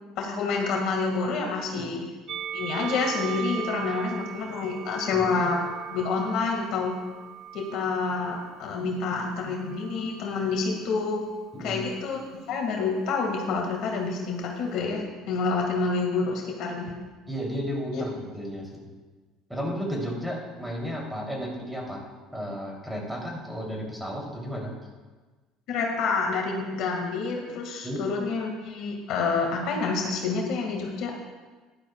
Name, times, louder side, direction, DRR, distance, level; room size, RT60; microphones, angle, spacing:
voice 1, 0.2-2.0 2.5-5.6 5.9-6.9 7.5-11.3 11.6-16.9 17.9-18.0 25.7-31.1, left 4 dB, 65° left, 1 dB, 2.0 m, -28 dB
Musical instrument, 2.3-8.7 9.5-10.5, right 10 dB, 40° right, 0.5 m, -38 dB
voice 2, 17.3-18.9 19.5-22.0 22.3-24.7 27.8-28.0, equal, 5° right, -2 dB, 3.1 m, -33 dB
15.0 x 11.5 x 2.4 m, 1.3 s
supercardioid pair, 100°, 0 cm